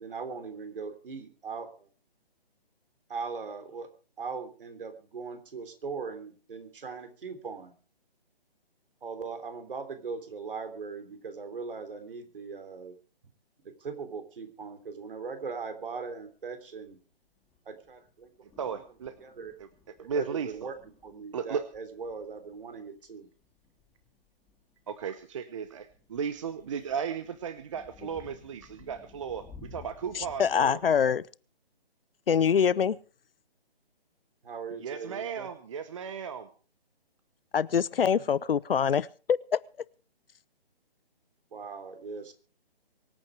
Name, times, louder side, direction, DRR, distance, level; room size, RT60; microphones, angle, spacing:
voice 1, 0.0-1.9 3.1-3.9 4.2-7.7 9.0-13.0 13.8-17.0 17.7-18.3 18.7-18.8 19.2-19.5 20.0-20.8 21.0-23.3 34.4-35.5 41.5-42.3, right 5 dB, 60° right, 3.4 m, -39 dB
sound 1, 16.2-16.3 16.8-16.9 17.4-31.1, left 4 dB, 5° left, 3.3 m, -56 dB
voice 2, 18.6-19.1 20.0-20.5 21.3-21.6 24.9-29.4 29.7-30.8 34.8-36.5, right 6 dB, 30° right, 0.9 m, -35 dB
voice 3, 30.1-31.2 32.3-33.0 37.5-39.6, left 7 dB, 65° left, 0.7 m, -25 dB
24.0 x 8.8 x 4.8 m
hypercardioid pair, 160°, 30 cm